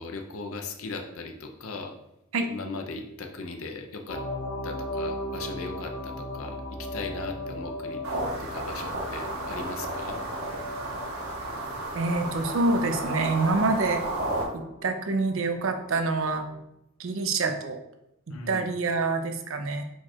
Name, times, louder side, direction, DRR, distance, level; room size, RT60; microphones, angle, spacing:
voice 1, 0.0-2.0 2.5-4.2 4.6-8.0 8.4-10.2 11.7-11.8 18.3-18.7, left 3 dB, 75° left, 4 dB, 0.5 m, -38 dB
sound 1, 4.1-16.6, left 1 dB, 55° left, 0.8 m, -38 dB
sound 2, 8.0-14.4, right 2 dB, 90° right, 1.2 m, -32 dB
voice 2, 11.9-14.0 14.5-16.4 17.0-17.8 18.5-19.8, right 3 dB, 65° right, 6 dB, 0.5 m, -26 dB
4.5 x 2.4 x 4.2 m, 0.84 s
head